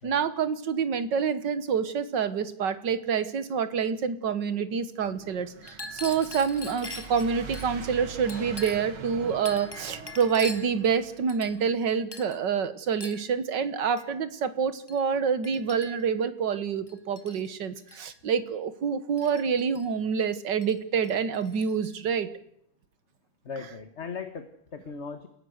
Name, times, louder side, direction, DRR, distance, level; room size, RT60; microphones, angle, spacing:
voice 1, 0.0-22.3, right 6 dB, 60° right, 12 dB, 1.9 m, -27 dB
sound 1, 5.0-11.7, right 5 dB, 85° right, 3.1 m, -44 dB
Chink clink, 5.6-7.7 8.3-9.0 9.5-10.8 11.3-11.8 12.1-12.4 13.0-13.3 14.0-14.1 14.9-15.0 15.4-16.1 16.9-17.5 17.8-18.1 19.2-19.9 20.6-20.8 21.0-21.9, left 2 dB, 10° left, 1.9 m, -43 dB
voice 2, 23.4-25.3, left 5 dB, 35° left, 8 dB, 1.5 m, -38 dB
29.0 x 17.0 x 6.5 m, 0.73 s
omnidirectional pair, 2.3 m